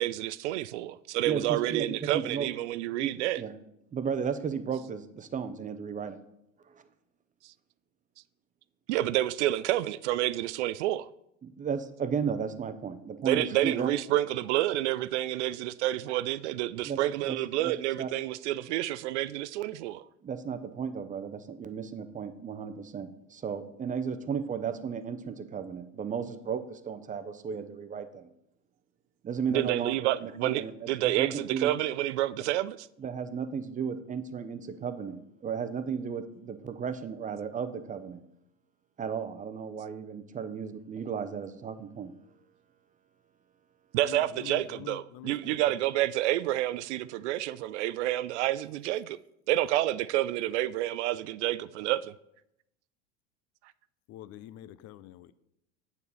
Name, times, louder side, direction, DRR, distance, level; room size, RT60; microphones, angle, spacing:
voice 1, 0.0-3.4 7.4-7.5 8.9-11.1 13.2-20.1 29.5-32.8 43.9-49.2 49.5-52.1, right 14 dB, 65° right, 0.5 m, -29 dB
voice 2, 1.2-2.5 3.0-3.5 3.9-6.2 6.7-6.8 11.4-13.9 16.8-17.0 17.3-17.4 17.6-17.7 18.0-18.1 20.2-28.3 29.2-31.7 33.0-38.2 39.0-42.1, right 6 dB, 20° right, 0.7 m, -34 dB
voice 3, 43.9-45.8 54.1-55.3, left 13 dB, 45° left, 0.5 m, -46 dB
8.2 x 7.0 x 4.1 m
hypercardioid pair, 90°, 37 cm